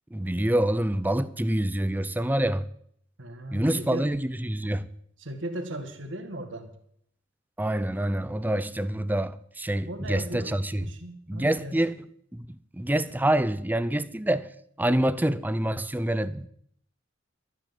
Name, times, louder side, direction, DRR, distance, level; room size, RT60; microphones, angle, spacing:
voice 1, 0.1-2.7 3.5-4.9 7.6-10.8 11.3-12.0 12.3-12.5 12.7-14.5 14.8-16.5, right 1 dB, 10° right, 0.5 m, -26 dB
voice 2, 3.2-4.1 5.2-6.7 9.9-11.8, right 1 dB, 75° right, 2.0 m, -37 dB
13.0 x 9.1 x 7.6 m
head